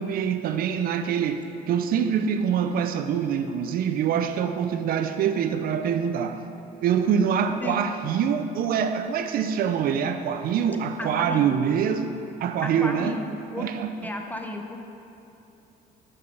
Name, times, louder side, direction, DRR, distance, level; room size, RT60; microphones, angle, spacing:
voice 1, 0.0-6.4 6.8-13.2 13.6-14.0, right 7 dB, 60° right, 8 dB, 0.4 m, -25 dB
voice 2, 11.0-11.6 12.6-13.7 14.0-14.8, left 1 dB, 10° left, 3 dB, 0.6 m, -34 dB
6.5 x 5.3 x 5.8 m, 2.9 s
cardioid pair, 110°, 17 cm